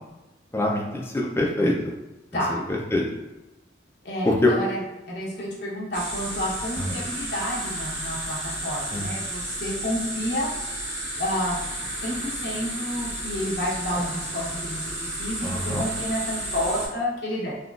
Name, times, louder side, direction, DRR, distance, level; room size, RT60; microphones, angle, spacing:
voice 1, 0.5-1.8 2.7-3.0 4.2-4.5 6.9-7.0 8.9-9.1 15.4-15.8, left 1 dB, 15° left, -2 dB, 0.4 m, -24 dB
voice 2, 4.0-4.8 5.1-10.5 11.2-11.6 12.0-17.5, equal, 60° left, -5 dB, 0.8 m, -30 dB
sound 1, 5.9-16.9, right 1 dB, 85° right, 1.3 m, -32 dB
3.6 x 2.3 x 2.4 m, 1.0 s
head